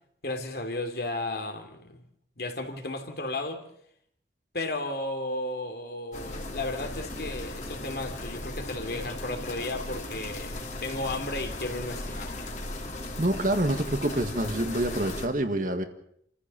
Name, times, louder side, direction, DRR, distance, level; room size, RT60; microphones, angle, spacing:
voice 1, 0.2-2.0 2.4-3.6 4.5-12.3, left 2 dB, 60° left, 5 dB, 3.0 m, -34 dB
sound 1, 6.1-15.3, left 2 dB, 40° left, 3.0 m, -37 dB
voice 2, 13.2-15.8, right 1 dB, 45° right, 7 dB, 1.7 m, -27 dB
28.5 x 14.5 x 7.0 m, 0.70 s
head